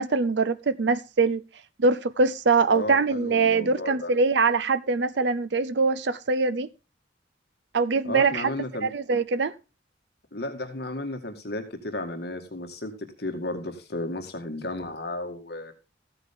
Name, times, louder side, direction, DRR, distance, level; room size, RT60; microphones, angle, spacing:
voice 1, 0.0-1.4 1.8-6.7 7.7-8.5 8.8-9.5, right 4 dB, 70° right, 0.6 m, -23 dB
voice 2, 2.7-4.1 8.0-8.9 10.3-15.7, left 1 dB, 55° left, 1.9 m, -33 dB
14.5 x 9.1 x 3.7 m
head